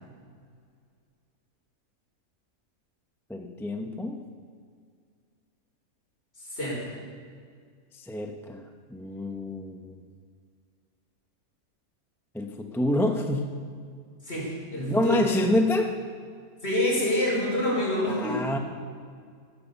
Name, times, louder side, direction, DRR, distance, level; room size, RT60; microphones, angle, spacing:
voice 1, 3.3-4.2 7.9-10.0 12.3-13.5 14.9-15.9 18.1-18.6, left 1 dB, ahead, 4 dB, 0.6 m, -27 dB
voice 2, 6.4-6.9 14.2-15.2 16.6-18.4, left 1 dB, 40° left, -5 dB, 5.3 m, -27 dB
14.5 x 11.5 x 7.0 m, 2.1 s
omnidirectional pair, 1.6 m